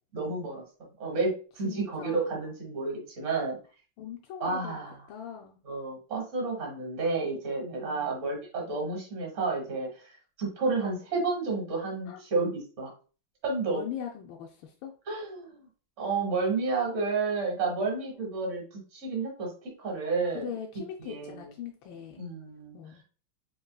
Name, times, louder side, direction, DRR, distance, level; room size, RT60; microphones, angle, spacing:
voice 1, 0.1-0.6 1.0-3.6 4.4-4.9 5.6-12.9 13.4-13.8 15.1-15.7 16.0-20.4 21.0-21.5 22.2-22.8, right 3 dB, 40° right, -1 dB, 1.6 m, -31 dB
voice 2, 1.6-2.4 4.0-4.8 5.1-5.6 7.7-8.2 12.1-12.2 13.7-14.9 20.3-22.2 22.7-23.0, left 8 dB, 75° left, 0 dB, 1.3 m, -41 dB
5.2 x 3.0 x 2.2 m, 0.37 s
omnidirectional pair, 2.3 m